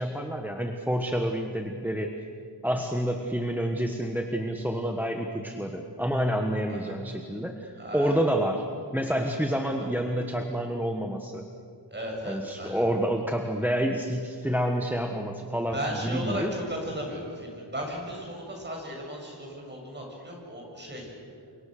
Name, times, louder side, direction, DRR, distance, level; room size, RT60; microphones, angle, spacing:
voice 1, 0.0-2.1 2.6-8.6 8.9-11.5 12.2-16.5, equal, 5° right, 3 dB, 1.4 m, -28 dB
voice 2, 7.8-8.2 9.7-9.9 11.9-12.8 15.7-21.1, equal, 25° right, -1 dB, 7.8 m, -36 dB
30.0 x 25.5 x 6.7 m, 2.5 s
wide cardioid pair, 130°, 43 cm